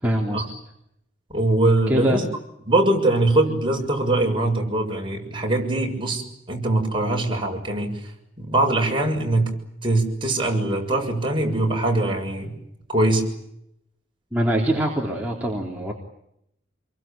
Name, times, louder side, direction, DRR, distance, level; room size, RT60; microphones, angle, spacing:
voice 1, 0.0-0.4 1.9-2.2 14.3-15.9, right 1 dB, 10° right, -2 dB, 3.6 m, -23 dB
voice 2, 1.3-2.2 2.6-6.2 6.5-8.0 8.4-9.5 9.8-12.5 12.9-13.3, right 2 dB, 25° right, 2 dB, 6.8 m, -22 dB
28.0 x 23.5 x 9.0 m, 0.79 s
head